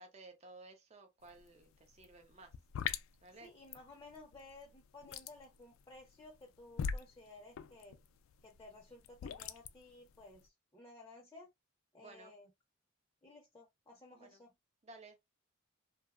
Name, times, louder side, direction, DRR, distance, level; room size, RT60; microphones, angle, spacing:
voice 1, 0.0-2.5 3.2-3.5 12.0-12.3 14.1-14.4 14.8-15.2, right 2 dB, 35° right, 0.5 m, -56 dB
sound 1, 1.2-1.5 1.7-10.4, left 7 dB, 85° left, 0.3 m, -42 dB
voice 2, 3.4-8.0 8.4-11.5 11.9-12.5 13.2-14.5, left 2 dB, 15° left, 0.5 m, -56 dB
2.7 x 2.1 x 2.3 m
head